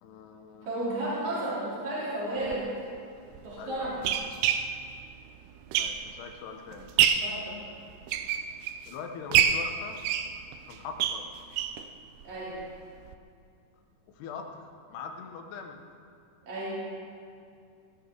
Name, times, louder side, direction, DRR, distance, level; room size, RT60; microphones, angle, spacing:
voice 1, 0.0-0.7 3.6-4.0 5.8-6.9 8.9-10.0 10.7-11.3 14.1-15.8, left 5 dB, 80° left, 4 dB, 3.0 m, -42 dB
voice 2, 0.6-2.7 3.4-4.0 7.2-7.6 12.2-12.6 16.5-16.8, right 1 dB, 45° right, -9 dB, 4.6 m, -33 dB
sound 1, 2.4-2.6 3.4-6.3 6.7-7.4 7.9-8.9 9.3-11.9 12.2-12.3 12.6-12.7 13.1-13.2, right 9 dB, 80° right, 2.5 m, -27 dB
18.0 x 12.5 x 3.8 m, 2.4 s
omnidirectional pair, 4.7 m